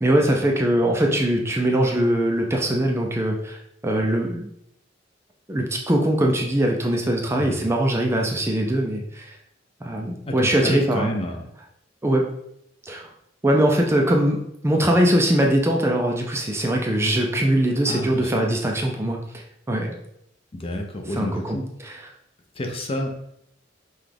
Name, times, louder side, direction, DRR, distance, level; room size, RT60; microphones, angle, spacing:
voice 1, 0.0-4.5 5.5-9.4 9.8-11.1 12.0-12.3 12.9-13.1 13.4-19.9 21.1-22.0, right 1 dB, 15° right, 1 dB, 0.4 m, -22 dB
voice 2, 10.3-11.4 17.9-18.3 20.6-21.6 22.6-23.1, left 1 dB, 30° left, 3 dB, 0.6 m, -29 dB
5.7 x 2.3 x 3.3 m, 0.76 s
head